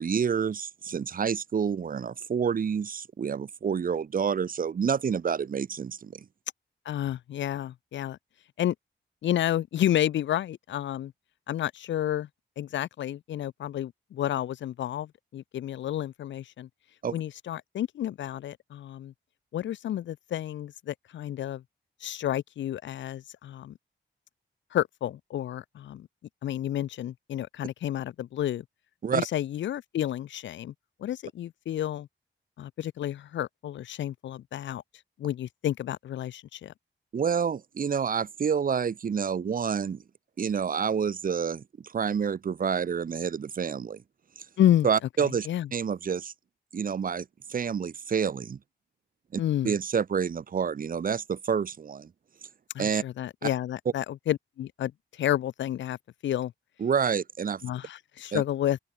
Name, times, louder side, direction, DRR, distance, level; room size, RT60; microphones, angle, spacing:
voice 1, 0.0-6.2 17.0-17.2 29.0-29.3 37.1-40.0 40.4-44.0 44.8-46.3 46.7-48.6 49.3-52.1 52.8-53.0 56.8-57.6 58.3-58.4, right 7 dB, 50° right, 1.0 m, -28 dB
voice 2, 6.9-8.2 8.6-8.7 9.2-11.1 11.5-12.3 12.6-16.7 17.1-19.1 19.5-21.6 22.0-23.8 24.7-26.1 26.4-28.6 29.1-30.7 31.0-32.1 32.6-34.8 35.2-36.7 44.6-44.9 45.5-45.7 49.4-49.7 52.7-56.0 56.2-56.5 57.6-58.8, left 11 dB, 80° left, 0.4 m, -30 dB
wide cardioid pair, 165°, 19 cm